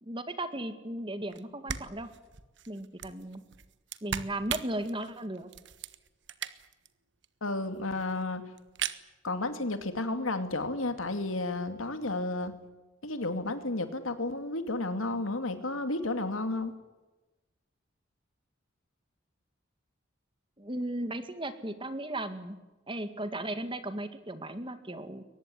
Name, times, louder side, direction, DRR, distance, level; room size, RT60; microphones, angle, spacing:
voice 1, 0.0-2.1 2.7-3.4 4.0-5.5 20.6-22.6 22.9-25.2, right 1 dB, 25° right, 10 dB, 2.0 m, -36 dB
sound 1, 1.3-1.4 1.7-6.9 7.2-7.3 7.5-7.6 7.8-8.2 8.6-9.0, right 8 dB, 60° right, 1.4 m, -39 dB
voice 2, 7.4-8.5 9.2-12.6 13.0-16.7, left 2 dB, 85° left, 8 dB, 2.6 m, -32 dB
23.0 x 19.0 x 9.9 m, 1.1 s
head